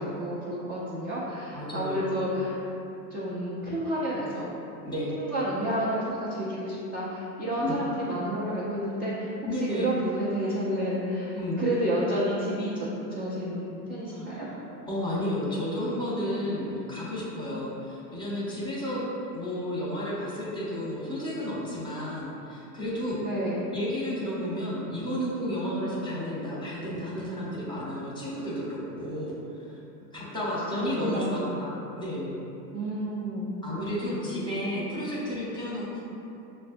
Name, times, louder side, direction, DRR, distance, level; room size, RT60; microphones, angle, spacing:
voice 1, 0.0-2.6 3.1-4.5 5.2-14.5 23.2-23.6 30.7-31.6 32.7-33.5 34.6-35.0, right 1 dB, 25° right, -8 dB, 0.4 m, -30 dB
voice 2, 1.5-2.1 4.8-5.1 7.6-7.8 9.4-9.9 11.3-11.6 14.1-14.4 14.9-19.0 19.3-23.2 23.7-29.8 30.1-32.4 33.6-36.0, equal, 10° left, -7 dB, 0.8 m, -32 dB
5.9 x 2.1 x 2.5 m, 2.9 s
hypercardioid pair, 115°, 49 cm